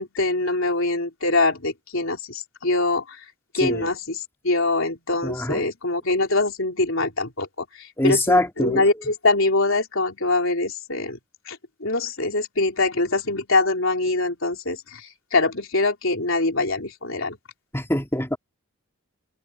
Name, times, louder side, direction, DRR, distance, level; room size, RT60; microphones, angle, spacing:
voice 1, 0.0-3.0 3.5-4.2 4.4-7.5 8.0-11.2 11.5-14.8 15.3-17.4, left 2 dB, 65° left, 3.9 m, -23 dB
voice 2, 3.6-3.9 5.2-5.7 8.0-9.1 17.7-18.4, left 1 dB, 10° left, 2.9 m, -24 dB
head